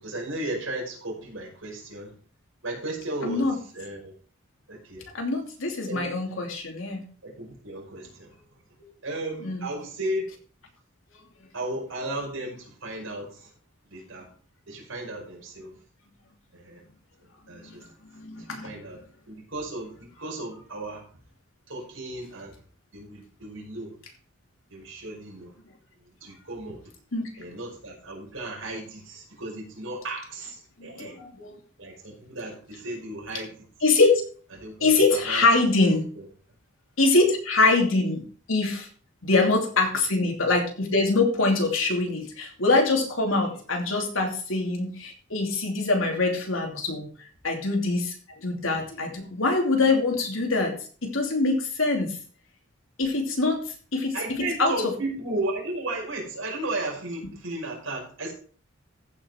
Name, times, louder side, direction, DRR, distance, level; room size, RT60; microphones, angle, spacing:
voice 1, 0.0-2.1 2.6-3.5 3.7-4.1 4.7-5.1 5.9-6.0 7.2-8.3 9.0-10.3 11.5-13.5 13.9-14.3 14.7-15.7 16.5-16.8 17.5-17.8 18.6-19.0 19.3-21.1 21.7-22.5 22.9-23.9 24.7-25.6 26.2-26.8 27.4-31.2 31.8-33.7 34.6-35.4 54.1-58.3, right 2 dB, 75° right, -1 dB, 5.3 m, -34 dB
voice 2, 3.2-3.6 5.1-7.0 8.8-8.9 9.4-9.7 17.5-17.9 18.1-18.7 27.1-27.3 30.8-31.5 33.8-34.2 34.8-36.1 37.0-38.2 38.5-38.9 39.2-47.1 47.4-48.1 48.4-50.7 51.0-52.2 53.0-53.6 53.9-54.9, left 3 dB, 80° left, 2 dB, 2.8 m, -24 dB
15.0 x 5.9 x 4.5 m, 0.43 s
head